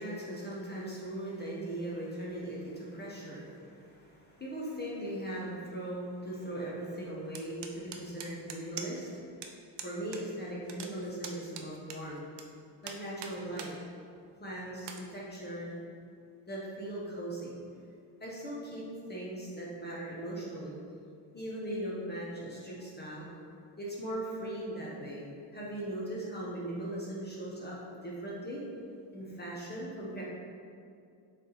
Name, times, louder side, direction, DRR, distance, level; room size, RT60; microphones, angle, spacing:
voice 1, 0.0-9.2 9.8-12.2 12.8-13.7 14.4-15.8 16.5-17.5 18.2-20.8 21.3-23.3 23.8-28.6 29.1-30.2, right 1 dB, 20° left, -5 dB, 0.9 m, -39 dB
sound 1, 7.3-9.1 9.4-9.5 9.8-10.2 10.5-12.4 12.8-13.7 14.2-14.3 14.8-15.0, right 7 dB, 65° right, 0.6 m, -43 dB
6.9 x 3.5 x 4.0 m, 2.5 s
wide cardioid pair, 155°, 44 cm